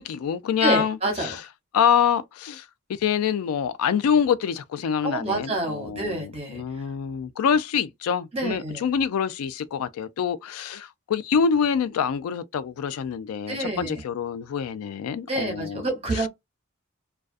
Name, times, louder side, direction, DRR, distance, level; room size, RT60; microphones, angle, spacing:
voice 1, 0.0-1.4 1.7-2.7 3.0-15.8, left 7 dB, 90° left, 0.3 m, -25 dB
voice 2, 0.6-1.4 5.0-6.6 8.3-8.9 13.5-14.0 15.3-16.3, right 2 dB, 25° right, 0.8 m, -28 dB
2.3 x 2.2 x 2.4 m
head